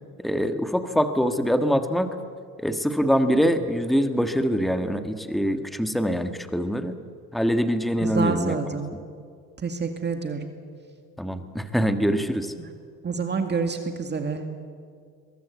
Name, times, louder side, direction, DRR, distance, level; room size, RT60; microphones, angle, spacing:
voice 1, 0.2-2.1 2.6-6.9 7.3-8.6 11.2-12.5, equal, ahead, 7 dB, 1.6 m, -24 dB
voice 2, 8.0-8.9 9.6-10.5 12.6-12.7 13.0-14.4, right 5 dB, 30° right, 5 dB, 2.2 m, -27 dB
22.5 x 22.5 x 8.4 m, 2.1 s
supercardioid pair, 95°, 36 cm